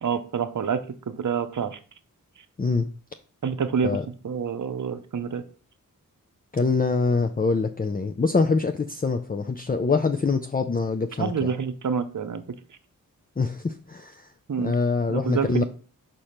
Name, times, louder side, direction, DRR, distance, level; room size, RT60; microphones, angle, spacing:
voice 1, 0.0-1.8 3.4-5.4 11.2-12.6 14.5-14.7 15.1-15.6, right 6 dB, 60° right, 9 dB, 0.7 m, -27 dB
voice 2, 6.5-11.5 13.4-14.3 14.6-15.6, left 4 dB, 25° left, 6 dB, 0.5 m, -24 dB
4.9 x 4.4 x 5.7 m, 0.40 s
cardioid pair, 40°, 35 cm